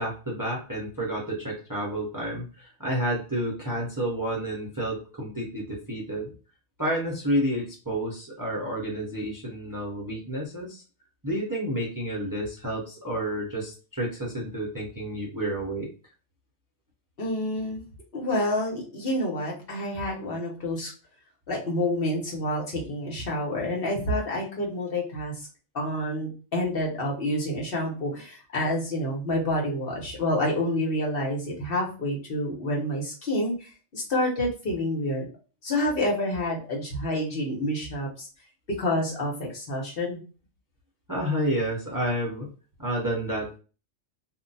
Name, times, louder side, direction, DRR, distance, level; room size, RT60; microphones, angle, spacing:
voice 1, 0.0-6.3 6.8-10.8 11.2-15.9 41.1-42.5 42.8-43.6, right 1 dB, 20° right, -4 dB, 0.7 m, -30 dB
voice 2, 17.2-17.8 18.1-20.9 21.5-25.3 25.7-35.3 35.6-38.3 38.8-40.2, left 1 dB, 55° left, -2 dB, 1.1 m, -28 dB
2.5 x 2.2 x 3.9 m, 0.35 s
omnidirectional pair, 1.2 m